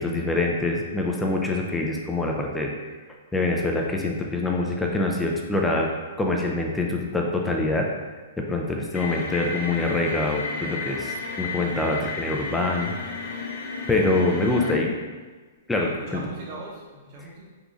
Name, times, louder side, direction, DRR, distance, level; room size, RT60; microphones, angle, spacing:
voice 1, 0.0-2.7 3.3-5.9 6.2-7.9 8.4-12.9 13.9-14.9 15.7-16.2, left 2 dB, 5° left, 0 dB, 0.4 m, -25 dB
sound 1, 8.9-14.7, left 4 dB, 70° left, 0.6 m, -33 dB
voice 2, 15.7-17.5, right 2 dB, 45° right, -4 dB, 1.0 m, -39 dB
3.7 x 2.9 x 2.4 m, 1.4 s
hypercardioid pair, 140°, 0 cm